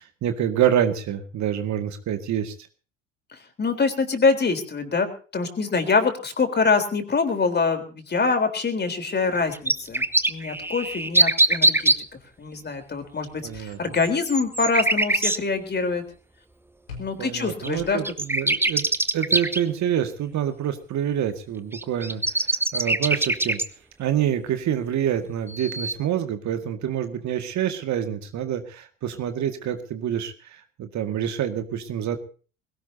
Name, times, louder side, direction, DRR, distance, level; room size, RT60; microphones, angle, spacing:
voice 1, 0.0-2.5 13.4-14.0 17.2-23.6 24.0-32.2, right 10 dB, 45° right, 8 dB, 2.0 m, -27 dB
voice 2, 3.3-11.9 12.4-16.0 17.0-18.0, left 4 dB, 25° left, 7 dB, 3.9 m, -25 dB
sound 1, 9.3-12.0 14.0-15.4 17.2-17.3 17.6-17.7 18.0-19.6 21.7-23.7 25.5-25.9, right 2 dB, 5° right, 1.1 m, -22 dB
sound 2, 13.1-14.1 14.4-14.8 16.9-18.3, left 5 dB, 90° left, 5.1 m, -45 dB
22.0 x 17.5 x 2.8 m, 0.37 s
hypercardioid pair, 70°, 38 cm